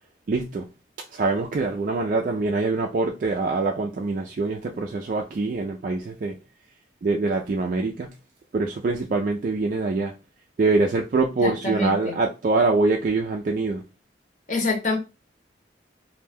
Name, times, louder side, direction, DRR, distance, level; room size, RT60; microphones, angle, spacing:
voice 1, 0.3-0.7 1.1-6.4 7.0-8.1 8.5-10.1 10.6-13.8, right 3 dB, 45° right, 0.3 m, -24 dB
voice 2, 11.4-12.2 14.5-15.0, left 3 dB, 40° left, 0.9 m, -26 dB
2.5 x 2.1 x 3.3 m
head